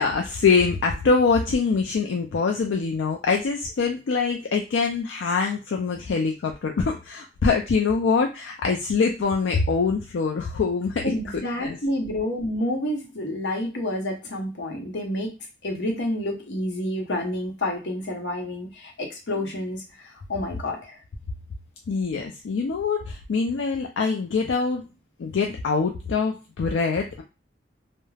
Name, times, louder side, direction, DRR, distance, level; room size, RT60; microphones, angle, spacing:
voice 1, 0.0-11.8 21.9-24.8 25.2-27.2, left 4 dB, 90° left, 2 dB, 0.4 m, -24 dB
voice 2, 11.0-15.3 15.6-19.8 20.3-21.0, left 1 dB, 70° left, 1 dB, 0.8 m, -29 dB
2.3 x 2.0 x 3.2 m, 0.31 s
head